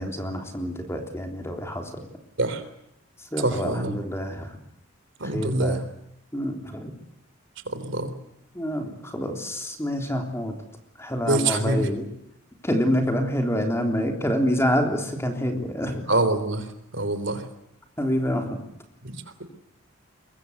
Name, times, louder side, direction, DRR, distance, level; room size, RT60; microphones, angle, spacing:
voice 1, 0.0-1.9 3.3-4.5 5.3-5.8 6.3-7.0 8.5-10.6 11.0-12.1 12.6-16.0 18.0-18.6, equal, 10° left, 4 dB, 3.5 m, -27 dB
voice 2, 3.4-4.0 5.2-5.8 7.7-8.1 11.3-11.9 16.1-16.7 16.9-17.4 19.0-19.2, right 2 dB, 60° right, 11 dB, 3.4 m, -25 dB
23.0 x 22.5 x 8.1 m, 0.80 s
head